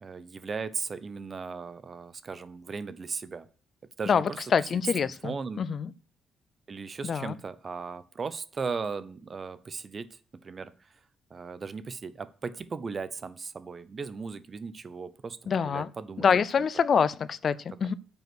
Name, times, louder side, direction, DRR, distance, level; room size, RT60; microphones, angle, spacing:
voice 1, 0.0-3.5 4.0-4.4 5.2-5.7 6.7-10.1 10.4-10.7 11.3-15.4 15.6-16.3, right 5 dB, 40° right, 0.8 m, -37 dB
voice 2, 4.1-5.9 7.0-7.3 15.5-15.9 16.2-17.9, left 6 dB, 50° left, 0.5 m, -26 dB
9.1 x 5.5 x 6.1 m
cardioid pair, 90°, 0 cm